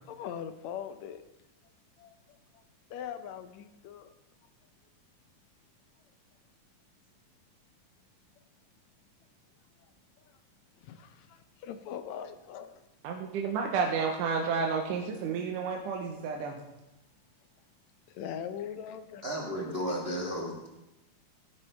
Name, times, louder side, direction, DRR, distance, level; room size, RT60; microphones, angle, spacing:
voice 1, 0.1-1.2 2.0-2.2 2.9-4.1 10.8-12.7 18.1-19.2, left 8 dB, 75° left, 10 dB, 1.8 m, -41 dB
voice 2, 13.0-16.6, right 5 dB, 85° right, 2 dB, 2.5 m, -31 dB
voice 3, 19.2-20.7, equal, 50° right, -2 dB, 0.7 m, -33 dB
17.0 x 10.0 x 3.4 m, 0.95 s
omnidirectional pair, 3.6 m